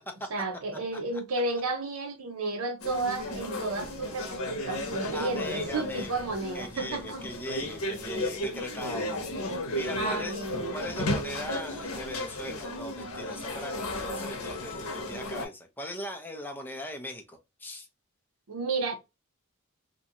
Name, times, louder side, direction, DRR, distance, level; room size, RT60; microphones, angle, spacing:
voice 1, 0.3-7.2 10.0-10.8 18.5-19.0, right 3 dB, 75° right, 0.6 m, -32 dB
sound 1, 2.8-15.5, left 1 dB, 90° left, 0.8 m, -34 dB
voice 2, 5.1-6.2 6.5-9.1 9.4-10.5 10.7-17.9, left 1 dB, 10° left, 0.5 m, -39 dB
2.5 x 2.2 x 2.8 m
head